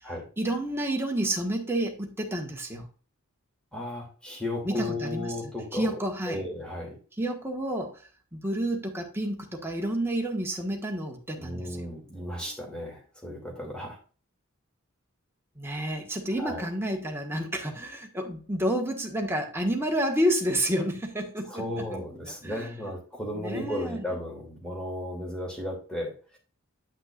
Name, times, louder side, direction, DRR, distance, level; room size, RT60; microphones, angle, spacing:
voice 1, 0.4-2.9 4.6-5.3 5.7-6.4 7.2-8.0 8.3-11.6 15.6-21.6 21.9-22.0 22.4-22.7 23.3-24.0, right 1 dB, 10° right, 1.4 m, -29 dB
voice 2, 3.7-7.0 11.4-14.0 16.4-16.7 21.5-26.4, left 1 dB, 5° left, 2.5 m, -35 dB
9.2 x 5.8 x 2.4 m
head